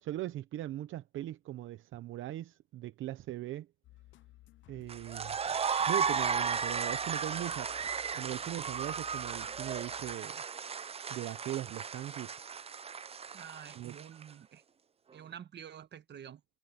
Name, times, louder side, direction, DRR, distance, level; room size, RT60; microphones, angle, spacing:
voice 1, 0.0-3.7 4.7-5.4 5.9-7.7 8.2-10.4 11.1-12.4 13.8-13.9, right 14 dB, 80° right, 0.8 m, -39 dB
sound 1, 3.8-10.6, left 16 dB, 75° left, 0.8 m, -58 dB
sound 2, 4.9-14.2, right 6 dB, 30° right, 0.6 m, -35 dB
voice 2, 13.3-14.6 15.1-16.4, right 9 dB, 60° right, 1.6 m, -48 dB
cardioid pair, 90°, 20 cm